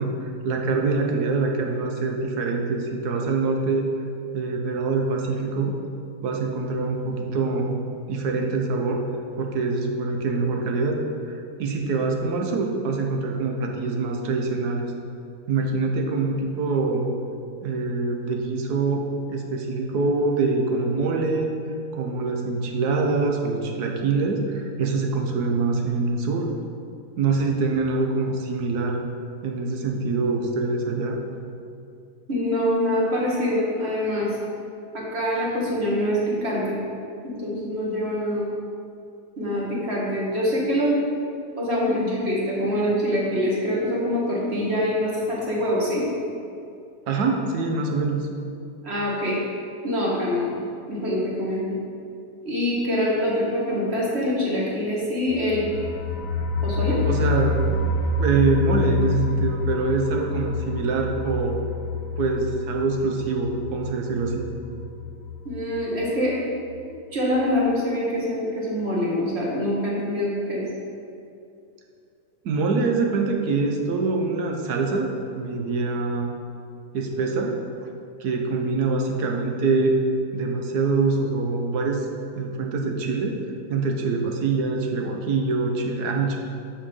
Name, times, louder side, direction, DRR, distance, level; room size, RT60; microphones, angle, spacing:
voice 1, 0.0-3.9 4.3-5.7 6.2-7.8 8.1-9.0 9.4-11.0 11.3-14.9 15.5-17.1 17.6-19.0 19.3-21.5 21.9-26.5 27.2-29.0 29.4-31.2 47.1-48.3 57.0-57.6 58.2-61.6 62.2-64.5 72.4-76.3 76.9-77.6 78.2-79.9 80.3-82.1 82.4-83.4 83.7-86.4, right 3 dB, 70° right, 2 dB, 1.4 m, -24 dB
voice 2, 32.3-34.3 34.9-36.8 37.2-38.5 39.4-40.9 41.6-46.0 48.8-49.4 49.8-50.5 50.9-51.8 52.5-55.6 56.6-57.0 65.5-66.4 67.1-70.7, equal, 40° right, -5 dB, 2.0 m, -24 dB
sound 1, 55.3-66.0 66.3-66.4 66.7-66.8, left 3 dB, 60° left, 1.1 m, -28 dB
6.8 x 5.8 x 5.5 m, 2.5 s
omnidirectional pair, 1.8 m